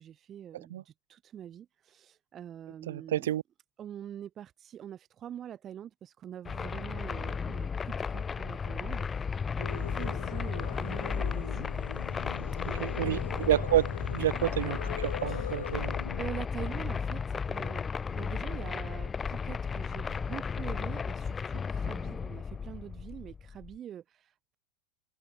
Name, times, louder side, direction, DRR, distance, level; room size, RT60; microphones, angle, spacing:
voice 1, 0.0-3.3 3.8-11.7 12.7-13.5 15.3-15.5 16.2-24.6, right 10 dB, 35° right, 2.3 m, -45 dB
voice 2, 2.9-3.4 12.8-16.0, right 12 dB, 70° right, 0.4 m, -29 dB
sound 1, 6.5-23.8, left 6 dB, 20° left, 0.9 m, -34 dB
Singing, 9.6-16.3, left 10 dB, 75° left, 0.5 m, -41 dB
figure-of-eight pair, 80°, 0 cm